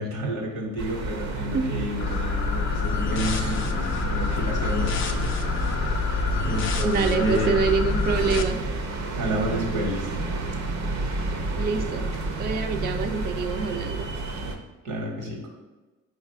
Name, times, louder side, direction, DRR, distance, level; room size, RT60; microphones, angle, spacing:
voice 1, 0.0-5.3 6.4-7.6 9.1-10.3 14.8-15.5, equal, 85° right, 0 dB, 1.3 m, -30 dB
sound 1, 0.8-14.5, right 2 dB, 65° right, 0.7 m, -30 dB
sound 2, 2.0-8.4, left 5 dB, 45° left, 0.5 m, -27 dB
voice 2, 6.8-8.6 11.5-14.1, right 5 dB, 35° right, 5 dB, 0.4 m, -26 dB
4.7 x 2.5 x 4.4 m, 1.2 s
cardioid pair, 90°, 30 cm